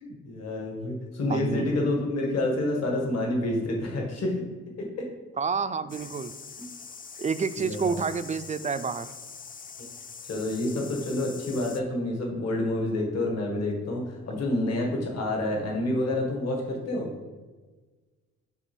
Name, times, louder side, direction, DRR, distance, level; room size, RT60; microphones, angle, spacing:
voice 1, 0.0-4.4 4.8-5.1 7.6-7.9 9.8-9.9 10.3-17.1, left 1 dB, 55° left, 0 dB, 1.8 m, -28 dB
voice 2, 1.3-1.7 5.4-6.3 7.2-9.1, right 5 dB, 25° right, 12 dB, 0.4 m, -29 dB
sound 1, 5.9-11.8, left 5 dB, 30° left, 0.6 m, -44 dB
6.8 x 3.4 x 6.1 m, 1.3 s
cardioid pair, 90°, 30 cm